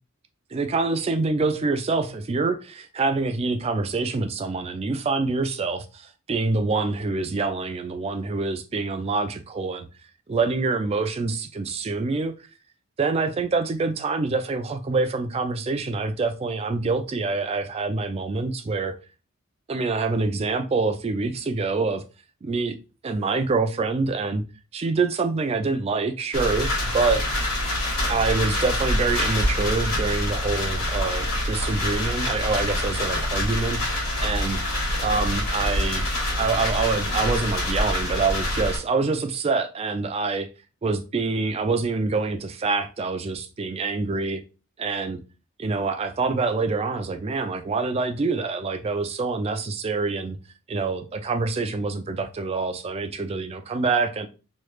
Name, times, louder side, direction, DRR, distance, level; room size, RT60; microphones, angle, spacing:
voice 1, 0.5-9.9 10.3-12.3 13.0-19.0 19.7-22.0 22.4-22.8 23.0-24.4 24.7-27.2 28.1-33.9 34.2-34.6 35.0-36.1 36.4-40.5 40.8-44.4 44.8-45.2 45.6-50.4 50.7-54.3, right 3 dB, 25° right, 0.3 m, -26 dB
sound 1, 26.3-38.8, left 1 dB, 70° left, 1.4 m, -26 dB
3.1 x 2.3 x 3.1 m
head